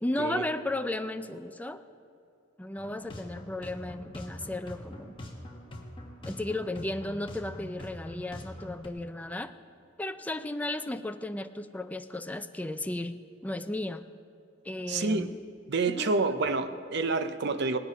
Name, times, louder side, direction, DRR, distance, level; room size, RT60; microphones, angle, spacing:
voice 1, 0.0-1.8 2.6-5.1 6.3-9.5 10.0-13.2 13.4-14.0 14.6-15.5 15.9-16.1, left 1 dB, 10° left, 9 dB, 0.4 m, -34 dB
sound 1, 2.8-8.9, left 1 dB, 25° left, 1.2 m, -44 dB
voice 2, 14.9-15.3 15.7-17.8, right 3 dB, 60° right, 10 dB, 0.7 m, -28 dB
18.5 x 8.2 x 5.3 m, 2.6 s
head